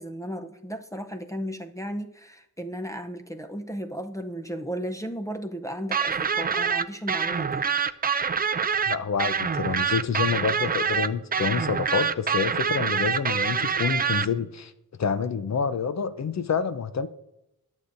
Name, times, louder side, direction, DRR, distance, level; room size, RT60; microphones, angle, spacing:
voice 1, 0.0-7.7, equal, 10° left, 0.7 m, -35 dB
sound 1, 5.9-14.3, right 6 dB, 25° right, 0.4 m, -25 dB
voice 2, 8.9-14.7 15.0-17.1, left 6 dB, 50° left, 0.7 m, -27 dB
21.0 x 7.2 x 2.6 m
wide cardioid pair, 110°, 36 cm